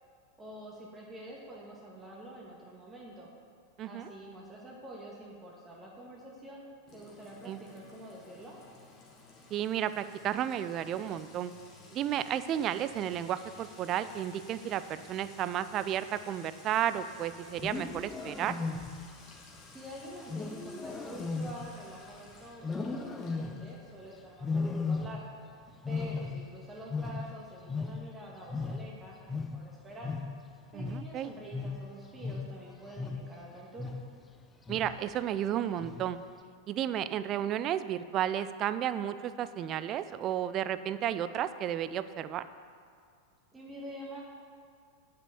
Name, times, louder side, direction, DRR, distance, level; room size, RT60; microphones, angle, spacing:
voice 1, 0.4-3.3 3.8-6.7 6.9-8.6 19.7-25.2 25.9-30.1 30.7-33.9 43.5-44.2, right 1 dB, 15° right, -4 dB, 1.8 m, -47 dB
voice 2, 3.8-4.1 7.5-7.6 9.5-11.5 11.9-18.5 30.7-31.3 34.7-36.2 36.7-42.4, right 10 dB, 35° right, 13 dB, 0.5 m, -32 dB
Sink (filling or washing) / Trickle dribble / Fill (with liquid), 6.9-24.3, left 3 dB, 35° left, 2.4 m, -55 dB
Wild animals, 17.5-19.2 20.3-22.2 22.6-23.8 24.4-25.5 25.7-28.2 28.5-33.4 33.8-34.2 34.7-35.1 35.8-36.3, left 4 dB, 15° left, 0.7 m, -36 dB
10.0 x 6.8 x 7.0 m, 2.3 s
figure-of-eight pair, 90°, 0 cm